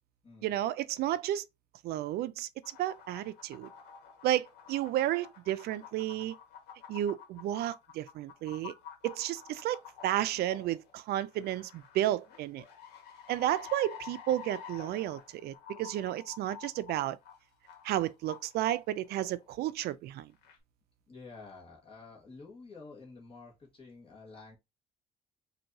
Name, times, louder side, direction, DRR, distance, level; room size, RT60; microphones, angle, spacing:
voice 1, 0.4-1.5 1.8-2.5 2.8-3.7 4.2-6.3 6.9-8.7 9.0-12.6 13.3-17.2 17.8-20.3, right 13 dB, 70° right, 0.4 m, -32 dB
sound 1, 2.6-19.6 20.3-20.6, left 8 dB, 80° left, 1.5 m, -50 dB
voice 2, 21.1-24.6, left 3 dB, 35° left, 1.5 m, -50 dB
4.5 x 2.7 x 2.7 m
cardioid pair, 110°, 17 cm